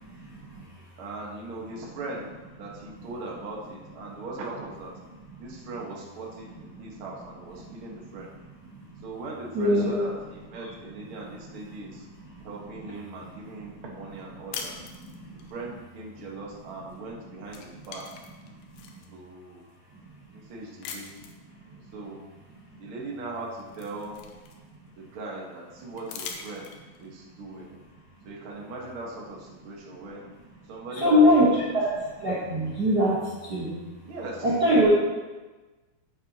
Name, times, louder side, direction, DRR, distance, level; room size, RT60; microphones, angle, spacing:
voice 1, 0.0-0.8 5.3-5.4 6.7-6.9 7.6-8.1 8.7-9.0 9.5-9.9 11.7-12.5 13.3-13.5 13.7-13.8 14.5-15.5 18.7-19.0 20.0-20.1 21.2-21.9 30.9-33.8 34.4-34.9, equal, 75° right, -7 dB, 0.9 m, -25 dB
voice 2, 1.0-2.3 2.6-4.9 5.4-8.3 9.0-12.0 12.4-14.7 15.5-18.1 19.1-19.6 20.3-21.2 21.6-22.2 22.8-24.2 24.9-26.7 27.0-27.8 28.2-30.2 30.7-31.5 34.0-34.4 34.9-35.0, right 2 dB, 50° right, -3 dB, 1.6 m, -39 dB
sound 1, 14.5-15.5 16.9-17.1 17.4-19.1 19.7-19.8 20.8-21.4 22.9-23.0 23.4-24.9 26.0-27.1, left 6 dB, 85° left, 3.0 m, -41 dB
11.5 x 7.3 x 3.0 m, 1.2 s
omnidirectional pair, 4.7 m